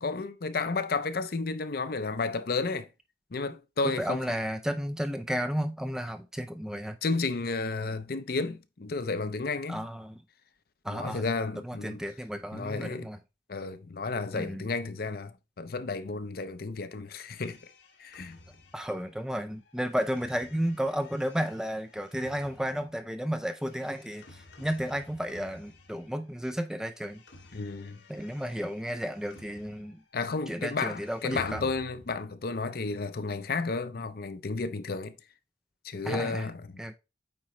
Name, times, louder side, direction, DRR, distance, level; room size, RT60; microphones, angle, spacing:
voice 1, 0.0-2.9 3.3-4.3 7.0-9.9 10.9-12.0 12.5-13.1 13.5-17.6 18.0-18.4 27.5-28.0 30.1-35.2 35.8-36.8, left 3 dB, 55° left, 0.6 m, -32 dB
voice 2, 3.8-7.0 9.7-10.2 10.8-11.2 11.6-13.2 14.3-14.6 18.7-27.2 28.1-30.0 30.5-31.6 36.0-36.5 36.8-36.9, equal, 5° right, 0.4 m, -33 dB
sound 1, 17.1-26.4 26.7-30.1 30.4-32.3, left 2 dB, 70° left, 1.5 m, -53 dB
8.7 x 3.0 x 4.3 m
head